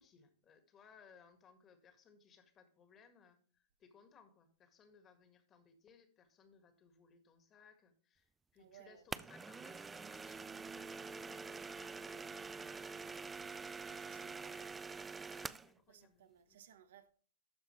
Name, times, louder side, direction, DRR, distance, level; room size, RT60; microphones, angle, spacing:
voice 1, 0.0-13.4 14.1-14.4 15.3-16.6, left 6 dB, 30° left, 1.7 m, -65 dB
voice 2, 8.6-9.2 13.9-14.8 15.9-17.1, right 10 dB, 70° right, 0.9 m, -61 dB
sound 1, 9.1-15.7, right 4 dB, 15° right, 0.3 m, -46 dB
13.0 x 5.0 x 3.2 m
hypercardioid pair, 120°, 0 cm